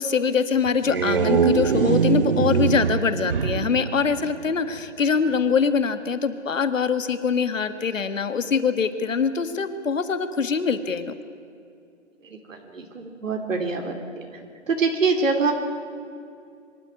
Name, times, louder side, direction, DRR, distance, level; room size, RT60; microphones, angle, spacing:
voice 1, 0.0-11.1, left 6 dB, 80° left, 11 dB, 1.6 m, -23 dB
sound 1, 0.7-4.9, right 6 dB, 45° right, 0.5 m, -23 dB
voice 2, 12.2-14.4 14.7-15.5, right 4 dB, 80° right, 3 dB, 3.0 m, -25 dB
24.5 x 13.0 x 9.5 m, 2.4 s
hypercardioid pair, 165°, 38 cm